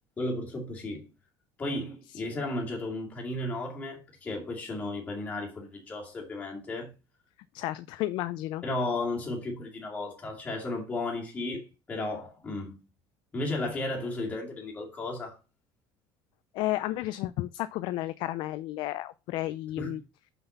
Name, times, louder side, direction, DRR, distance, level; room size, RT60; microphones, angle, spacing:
voice 1, 0.2-1.1 1.6-6.9 8.6-12.8 13.3-15.4 19.8-20.0, left 2 dB, 15° left, 2.3 m, -34 dB
voice 2, 7.5-8.6 16.5-20.0, left 16 dB, 55° left, 0.4 m, -32 dB
5.9 x 5.7 x 5.3 m
cardioid pair, 175°, 10 cm